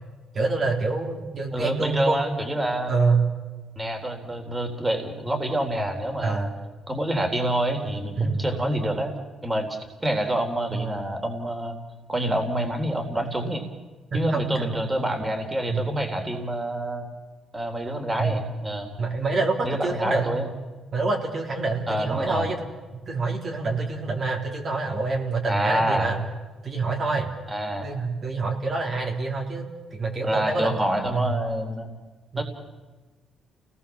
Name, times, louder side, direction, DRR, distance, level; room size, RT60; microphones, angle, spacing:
voice 1, 0.3-2.2 2.9-3.3 6.2-6.5 8.2-8.5 10.7-10.8 14.1-14.7 15.7-15.9 18.2-18.4 19.0-20.3 20.9-22.6 23.1-26.2 26.6-27.3 27.8-29.7 29.9-30.8 31.1-31.4 32.3-32.4, right 3 dB, 45° right, 1 dB, 3.8 m, -26 dB
voice 2, 1.5-2.9 3.8-6.5 6.9-9.1 9.4-11.8 12.1-13.6 14.1-17.1 17.5-18.9 19.6-20.5 21.9-22.5 25.5-26.1 27.5-27.9 30.2-31.9 32.4-32.5, right 1 dB, 15° right, 4 dB, 3.7 m, -27 dB
29.0 x 19.0 x 7.2 m, 1.3 s
cardioid pair, 90°, 0 cm